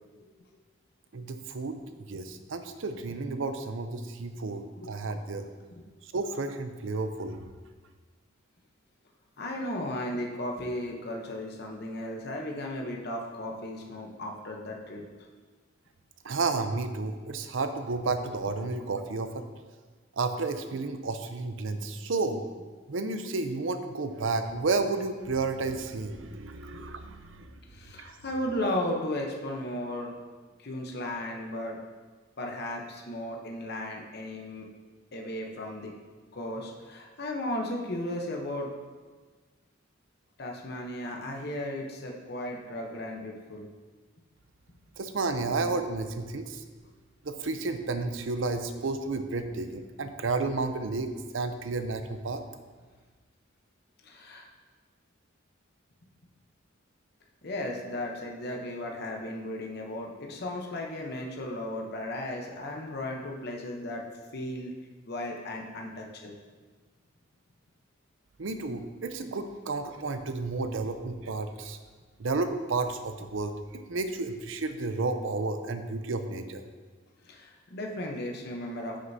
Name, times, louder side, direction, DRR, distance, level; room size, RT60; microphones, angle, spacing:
voice 1, 1.1-1.8 2.1-4.6 4.9-5.4 6.1-7.4 16.2-19.4 20.2-22.4 22.9-27.5 28.0-28.1 45.0-46.6 47.2-51.1 51.3-52.4 68.4-71.8 72.2-73.5 73.9-76.6, right 3 dB, 65° right, 8 dB, 0.6 m, -31 dB
voice 2, 9.4-15.1 26.7-26.9 27.7-30.2 30.6-31.8 32.4-34.7 35.1-35.9 36.3-38.7 40.4-43.7 54.0-54.5 57.4-64.0 64.3-64.7 65.1-66.3 77.2-79.0, left 1 dB, 50° left, 1 dB, 0.9 m, -35 dB
9.3 x 6.5 x 2.7 m, 1.4 s
head